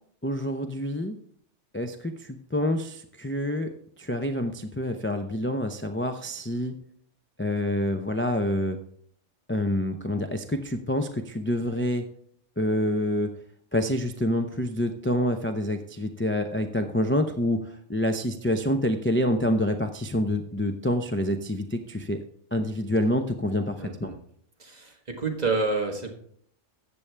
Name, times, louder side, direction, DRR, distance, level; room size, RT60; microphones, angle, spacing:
voice 1, 0.2-1.2 1.7-3.7 4.0-6.7 7.4-8.8 9.5-12.0 12.6-13.3 13.7-22.2 22.5-24.1, left 1 dB, 15° left, 5 dB, 0.5 m, -27 dB
voice 2, 23.8-24.2 24.6-26.1, right 3 dB, 35° right, 2 dB, 1.7 m, -29 dB
14.0 x 8.7 x 3.4 m, 0.64 s
omnidirectional pair, 1.2 m